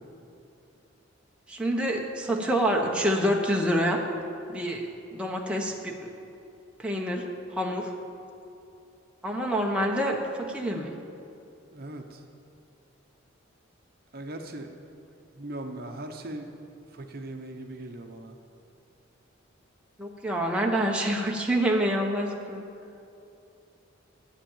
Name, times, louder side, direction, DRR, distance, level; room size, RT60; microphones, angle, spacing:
voice 1, 1.5-4.0 4.5-4.9 5.1-6.1 6.8-7.9 9.2-11.0 20.0-22.7, equal, 5° right, -1 dB, 0.9 m, -27 dB
voice 2, 11.7-12.2 14.1-14.7 15.4-16.5 16.9-18.3, right 1 dB, 45° right, 4 dB, 0.9 m, -39 dB
12.0 x 8.9 x 7.2 m, 2.7 s
head